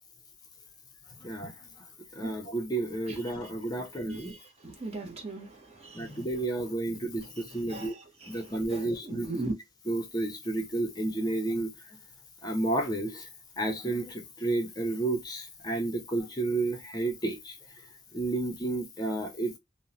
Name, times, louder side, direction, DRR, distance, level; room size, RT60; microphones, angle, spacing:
voice 1, 1.2-1.5 2.1-4.3 5.9-7.9 8.3-9.3 9.9-11.7 12.4-13.3 13.6-17.6 18.1-19.6, right 2 dB, 20° left, 0.6 m, -31 dB
voice 2, 4.0-4.4 4.6-6.2 7.6-8.4 8.7-9.5, right 2 dB, 35° right, 0.7 m, -38 dB
3.0 x 2.0 x 2.5 m
head